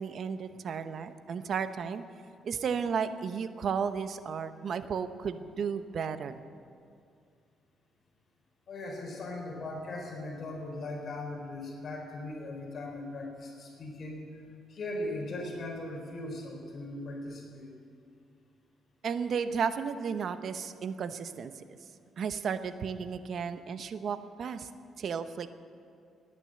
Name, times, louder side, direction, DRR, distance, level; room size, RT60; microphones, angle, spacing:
voice 1, 0.0-2.0 2.4-6.4 19.0-21.6 22.2-24.7 25.0-25.5, right 6 dB, 60° right, 11 dB, 0.9 m, -33 dB
voice 2, 8.7-14.2 14.7-17.7, left 2 dB, 50° left, 0 dB, 3.9 m, -39 dB
18.5 x 9.9 x 7.7 m, 2.4 s
cardioid pair, 90°, 0 cm